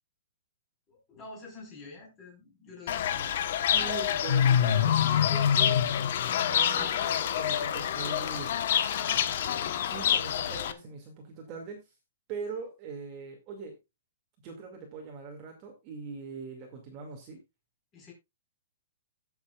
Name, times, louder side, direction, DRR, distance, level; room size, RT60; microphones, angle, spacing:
voice 1, 0.9-3.3 6.7-7.0 8.9-9.7 17.9-18.1, left 3 dB, 15° left, 0 dB, 4.7 m, -47 dB
Fowl / Bird, 2.9-10.7, left 9 dB, 45° left, 1.1 m, -26 dB
voice 2, 3.7-5.8 6.3-8.5 9.4-9.5 9.9-11.8 12.3-13.8 14.4-17.4, right 4 dB, 25° right, 1 dB, 2.2 m, -41 dB
18.0 x 7.2 x 2.4 m, 0.23 s
hypercardioid pair, 175°, 0 cm